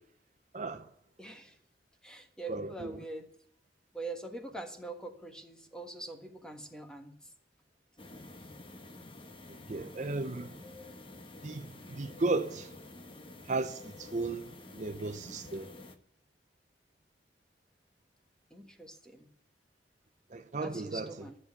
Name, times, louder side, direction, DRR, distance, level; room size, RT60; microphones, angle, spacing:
voice 1, 0.5-0.9 2.5-3.0 9.7-10.5 11.4-12.7 13.5-15.7 20.3-21.1, right 3 dB, 45° right, 0.6 m, -35 dB
voice 2, 1.2-1.6 2.0-3.3 3.9-7.2 18.5-19.3 20.6-21.4, right 2 dB, 5° left, 1.4 m, -43 dB
sound 1, 8.0-16.0, left 2 dB, 30° left, 1.1 m, -49 dB
13.0 x 7.6 x 9.5 m
head